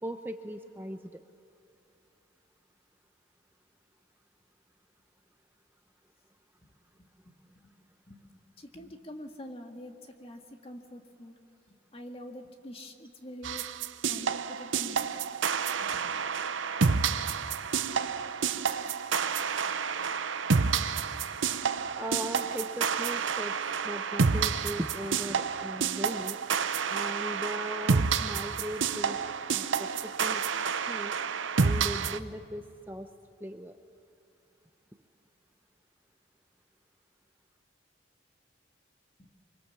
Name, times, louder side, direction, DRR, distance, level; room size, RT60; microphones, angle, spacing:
voice 1, 0.0-1.2 22.0-26.4 26.9-29.2 29.5-30.4 30.9-31.2 31.6-33.1 33.4-33.8, right 1 dB, 10° right, 6 dB, 0.7 m, -38 dB
voice 2, 8.1-11.3 11.7-13.7 14.1-15.2 15.8-16.2 39.2-39.3, left 1 dB, 30° left, 4 dB, 1.8 m, -46 dB
sound 1, 13.4-32.2, right 5 dB, 85° right, 0.8 m, -29 dB
25.0 x 24.5 x 7.4 m, 2.6 s
head